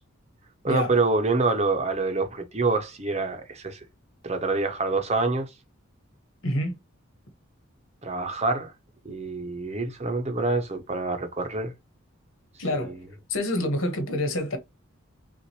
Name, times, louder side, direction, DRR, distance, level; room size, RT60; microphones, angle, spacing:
voice 1, 0.6-3.8 4.2-5.5 8.0-8.7 9.0-11.7 12.7-12.9, right 3 dB, 30° right, 0.8 m, -26 dB
voice 2, 6.4-6.8 12.6-13.0 13.3-14.6, left 1 dB, 80° left, 1.3 m, -27 dB
5.7 x 2.5 x 3.0 m
head